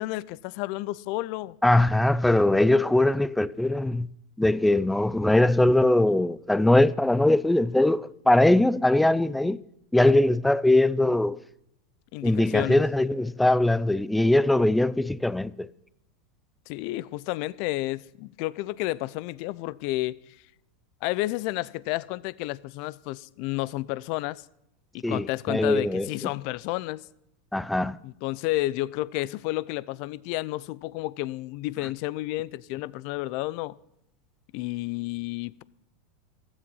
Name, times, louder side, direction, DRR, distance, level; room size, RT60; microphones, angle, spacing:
voice 1, 0.0-1.6 12.1-12.8 16.7-20.4 21.0-24.4 24.9-27.0 28.0-33.8 34.5-35.6, left 18 dB, 55° left, 0.6 m, -31 dB
voice 2, 1.6-4.1 4.4-9.6 9.9-11.4 12.2-15.7 25.0-26.1 27.5-28.0, left 1 dB, 5° left, 0.6 m, -21 dB
15.5 x 13.5 x 5.5 m
hypercardioid pair, 100°, 0 cm